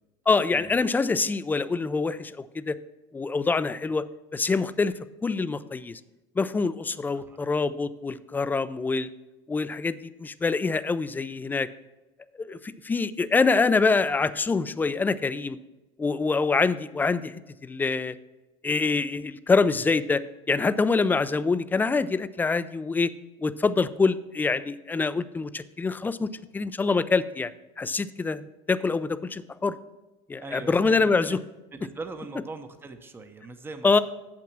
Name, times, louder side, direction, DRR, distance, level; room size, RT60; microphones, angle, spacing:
voice 1, 0.3-2.8 3.1-4.0 4.3-4.9 5.2-6.0 6.4-9.1 9.5-11.7 12.4-15.6 16.0-17.4 17.6-18.2 18.6-20.2 20.5-23.1 23.4-27.5 27.8-29.8 30.3-31.4 33.8-34.0, left 4 dB, 10° left, 14 dB, 0.3 m, -25 dB
voice 2, 30.4-31.4 31.7-33.9, right 3 dB, 15° right, 7 dB, 0.7 m, -40 dB
7.6 x 6.0 x 5.9 m, 1.1 s
supercardioid pair, 110°, 15 cm